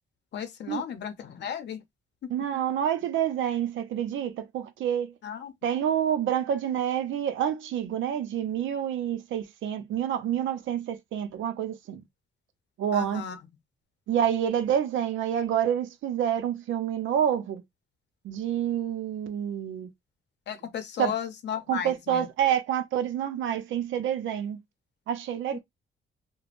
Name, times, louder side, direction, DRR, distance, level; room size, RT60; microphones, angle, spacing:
voice 1, 0.3-1.8 5.2-5.5 12.9-13.4 20.5-22.3 25.5-25.6, left 8 dB, 60° left, 0.7 m, -35 dB
voice 2, 2.3-5.1 5.6-12.0 12.8-13.2 14.1-17.6 18.2-19.9 21.0-21.1 21.7-24.6 25.1-25.6, right 9 dB, 75° right, 0.6 m, -28 dB
3.3 x 2.1 x 2.5 m
cardioid pair, 90°, 20 cm